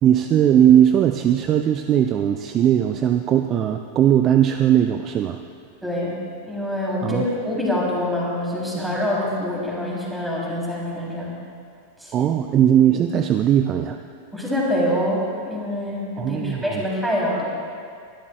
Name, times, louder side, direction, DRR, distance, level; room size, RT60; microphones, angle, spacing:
voice 1, 0.0-5.4 7.0-7.3 12.1-14.0 16.2-16.8, right 10 dB, 30° right, 7 dB, 0.4 m, -18 dB
voice 2, 5.8-6.2 6.4-11.3 12.0-12.3 14.3-17.4, left 1 dB, 5° right, -5 dB, 3.6 m, -25 dB
22.0 x 12.0 x 2.4 m, 2.3 s
figure-of-eight pair, 90°, 0 cm